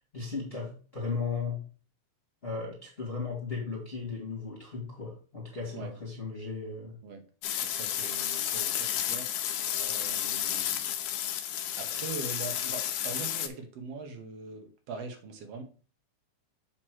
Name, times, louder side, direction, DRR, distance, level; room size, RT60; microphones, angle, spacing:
voice 1, 0.1-1.6 2.4-6.9, left 4 dB, 25° left, -2 dB, 1.4 m, -36 dB
sound 1, 7.4-13.5, left 11 dB, 80° left, 2.1 m, -32 dB
voice 2, 7.6-10.9 11.8-15.6, right 4 dB, 60° right, 5 dB, 2.0 m, -42 dB
7.6 x 3.0 x 6.2 m, 0.39 s
omnidirectional pair, 3.5 m